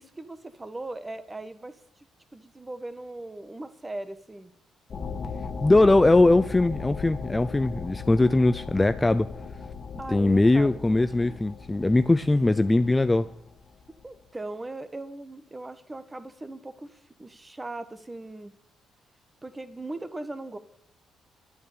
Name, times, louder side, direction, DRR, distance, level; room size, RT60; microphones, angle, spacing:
voice 1, 0.0-2.1 2.3-4.5 10.0-11.4 14.0-18.5 19.4-20.6, right 2 dB, 20° right, 1.4 m, -39 dB
sound 1, 4.9-14.0, left 5 dB, 50° left, 1.9 m, -38 dB
voice 2, 5.6-9.3 10.1-13.3, left 2 dB, 15° left, 0.6 m, -21 dB
11.0 x 9.3 x 8.5 m
cardioid pair, 90°, 0 cm